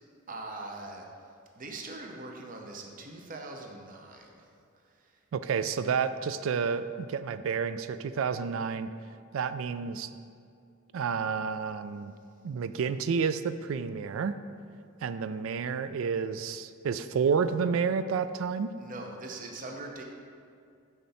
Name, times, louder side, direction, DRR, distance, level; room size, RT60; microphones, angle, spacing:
voice 1, 0.3-1.1 1.6-4.5 18.8-20.0, right 2 dB, 40° right, 2 dB, 0.7 m, -42 dB
voice 2, 5.3-8.9 9.3-10.1 10.9-12.1 12.4-14.4 15.0-18.8, right 6 dB, 70° right, 12 dB, 0.3 m, -30 dB
7.3 x 5.7 x 4.1 m, 2.3 s
head